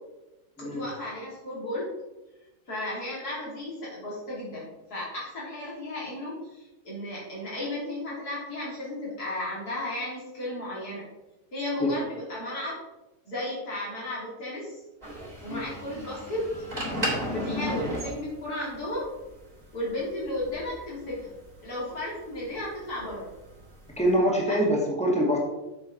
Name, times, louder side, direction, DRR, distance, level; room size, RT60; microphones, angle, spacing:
voice 1, 0.6-1.9 2.7-11.0 11.5-12.8 13.3-14.8 15.4-16.4 17.3-19.1 19.7-21.3 21.6-23.3 24.5-24.6, left 1 dB, 75° left, -6 dB, 4.0 m, -34 dB
sound 1, 15.0-24.1, equal, 25° right, 2.8 m, -34 dB
voice 2, 24.0-25.4, equal, 5° left, -2 dB, 2.1 m, -24 dB
7.8 x 6.9 x 4.2 m, 1.0 s
omnidirectional pair, 1.6 m